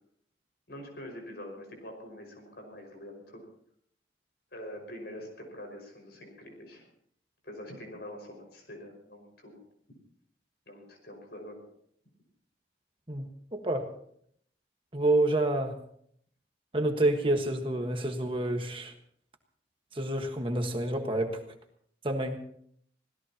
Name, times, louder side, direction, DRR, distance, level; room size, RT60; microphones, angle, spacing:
voice 1, 0.7-3.4 4.5-6.9 7.4-9.6 10.7-11.6, left 1 dB, 60° left, 3 dB, 5.4 m, -45 dB
voice 2, 13.5-13.9 14.9-15.7 16.7-18.9 19.9-21.4 22.0-22.4, right 1 dB, 30° right, 4 dB, 1.4 m, -28 dB
26.0 x 17.0 x 2.9 m, 0.65 s
head